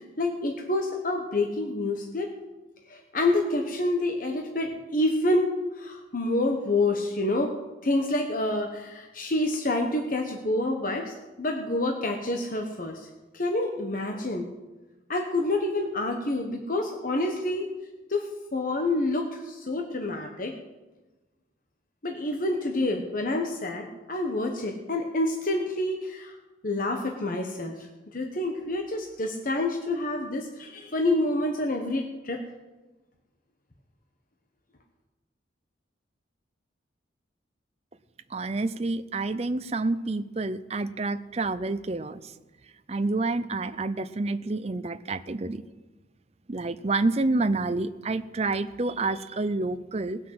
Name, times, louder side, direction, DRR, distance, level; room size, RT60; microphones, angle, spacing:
voice 1, 0.2-2.3 2.9-5.5 5.8-7.5 7.8-13.0 13.3-14.4 15.1-17.7 18.1-20.5 22.0-26.3 26.6-27.8 28.1-32.4, left 2 dB, 45° left, 3 dB, 1.1 m, -28 dB
voice 2, 38.3-42.2 42.9-45.6 46.5-50.2, right 3 dB, 35° right, 11 dB, 0.5 m, -28 dB
19.0 x 6.4 x 7.6 m, 1.1 s
head